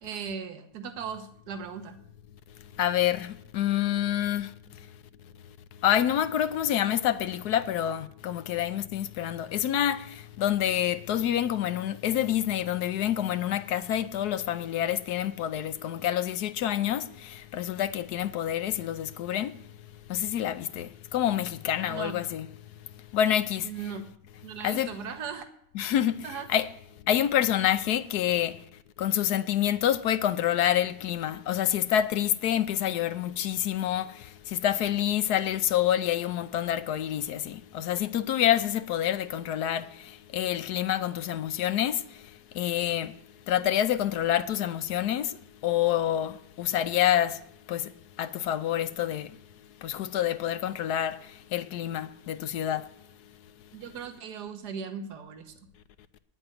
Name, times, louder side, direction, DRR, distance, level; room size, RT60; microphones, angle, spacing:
voice 1, 0.0-2.0 21.8-22.2 23.6-24.1 24.4-25.4 26.2-26.5 53.7-55.5, right 6 dB, 65° right, 1.7 m, -38 dB
voice 2, 2.8-4.5 5.8-19.5 20.1-22.5 23.1-23.7 24.6-24.9 25.7-26.2 26.5-26.7 27.1-28.6 29.0-42.2 42.5-43.1 43.5-45.4 45.6-47.4 47.7-47.9 48.2-49.3 49.8-52.9, left 11 dB, 70° left, 1.1 m, -27 dB
9.9 x 7.9 x 9.1 m
omnidirectional pair, 1.9 m